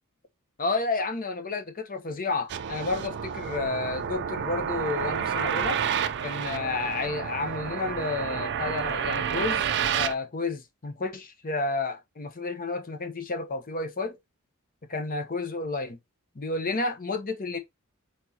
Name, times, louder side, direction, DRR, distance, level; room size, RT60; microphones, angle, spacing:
voice 1, 0.6-5.8 6.2-9.7 9.9-14.2 14.9-16.0 16.3-17.6, left 3 dB, 40° left, 0.9 m, -31 dB
sound 1, 2.5-10.1, right 8 dB, 50° right, 0.4 m, -30 dB
4.4 x 4.2 x 2.8 m
head